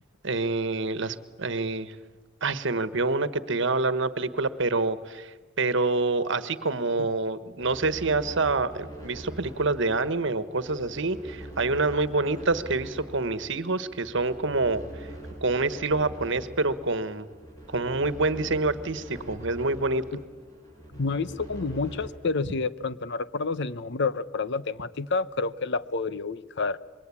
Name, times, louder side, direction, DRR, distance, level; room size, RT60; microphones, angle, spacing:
voice 1, 0.2-1.9 2.4-15.1 15.4-17.3 17.7-20.0, right 3 dB, 65° right, 13 dB, 1.3 m, -27 dB
sound 1, 7.6-22.1, right 1 dB, 20° left, 7.1 m, -43 dB
voice 2, 20.9-26.8, left 4 dB, 65° left, 15 dB, 0.8 m, -29 dB
26.5 x 22.5 x 8.6 m, 1.3 s
head